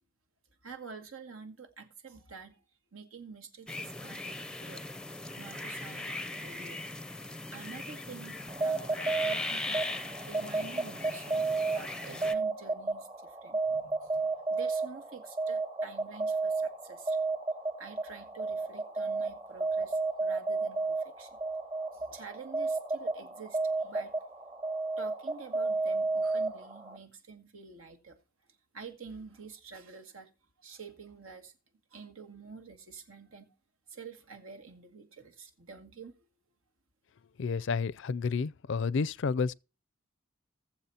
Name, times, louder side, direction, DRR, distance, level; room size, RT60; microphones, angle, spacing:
voice 1, 0.6-2.6 2.9-4.8 5.3-6.9 7.5-17.2 17.8-21.4 21.9-24.2 25.0-28.2 28.7-30.3 30.6-31.5 31.9-33.5 33.9-36.1, right 5 dB, 90° right, 2.1 m, -48 dB
sound 1, 3.7-12.4, left 2 dB, 5° left, 0.5 m, -39 dB
sound 2, 8.5-27.0, right 3 dB, 25° right, 1.0 m, -32 dB
voice 2, 37.4-39.5, left 5 dB, 60° left, 0.4 m, -30 dB
20.5 x 7.3 x 2.8 m
head